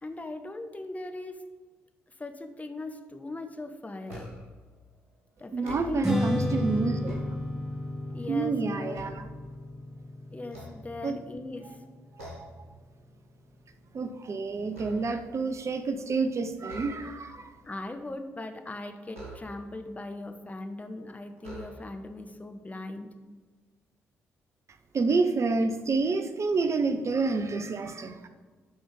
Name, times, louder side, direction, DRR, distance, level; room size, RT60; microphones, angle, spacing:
voice 1, 0.0-1.4 2.2-4.3 5.4-6.9 8.1-9.0 10.3-11.8 17.6-23.1, left 2 dB, 20° left, 6 dB, 1.2 m, -39 dB
sound 1, 4.1-4.6 5.5-6.3 6.8-7.9 8.4-9.9 10.4-11.4 12.2-12.7 13.1-13.3 13.7-15.4 16.6-17.4 19.1-19.9 20.7-20.8 21.4-22.2, right 1 dB, 85° right, 1.7 m, -46 dB
voice 2, 5.5-7.2 8.3-9.3 11.0-11.2 12.2-12.5 13.9-17.5 24.9-28.3, right 4 dB, 45° right, 9 dB, 0.8 m, -28 dB
Strum, 6.0-12.3, left 1 dB, 10° right, 2.2 m, -33 dB
12.5 x 4.3 x 5.3 m, 1.4 s
figure-of-eight pair, 40°, 7 cm